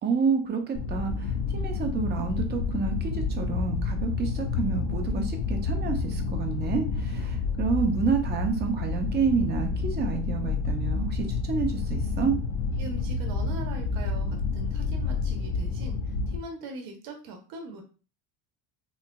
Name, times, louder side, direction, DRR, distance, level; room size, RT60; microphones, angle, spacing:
voice 1, 0.0-12.4, right 5 dB, 25° right, 5 dB, 0.5 m, -29 dB
sound 1, 0.8-16.4, left 4 dB, 60° left, 0.5 m, -29 dB
voice 2, 12.8-17.8, right 2 dB, 55° right, 3 dB, 0.8 m, -41 dB
3.6 x 2.9 x 2.2 m, 0.35 s
cardioid pair, 170°, 41 cm